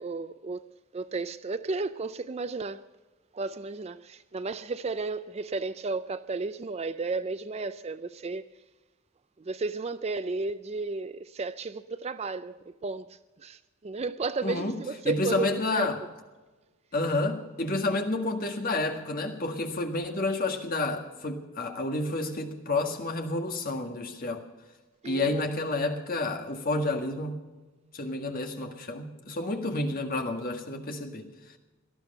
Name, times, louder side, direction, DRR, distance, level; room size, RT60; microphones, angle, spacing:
voice 1, 0.0-2.8 3.3-8.4 9.4-16.1 25.0-25.4, right 3 dB, 30° right, 0.4 m, -33 dB
voice 2, 14.4-16.0 16.9-24.4 25.0-27.4 27.9-31.3, left 2 dB, 40° left, 1.8 m, -30 dB
18.0 x 13.0 x 5.5 m
head